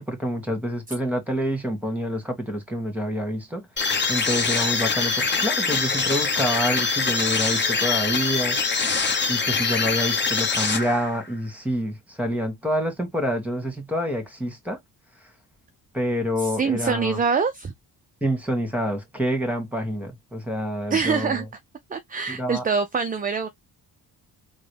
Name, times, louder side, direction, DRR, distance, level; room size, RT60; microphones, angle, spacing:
voice 1, 0.0-3.6 4.1-8.6 9.3-14.8 15.9-17.2 18.2-21.5 22.3-22.6, equal, 5° right, 1.7 m, -27 dB
sound 1, 3.8-11.3, left 4 dB, 25° left, 1.1 m, -24 dB
voice 2, 16.4-17.7 20.9-21.4 21.9-23.5, right 5 dB, 20° right, 0.5 m, -24 dB
3.9 x 2.2 x 3.4 m
cardioid pair, 90°, 40 cm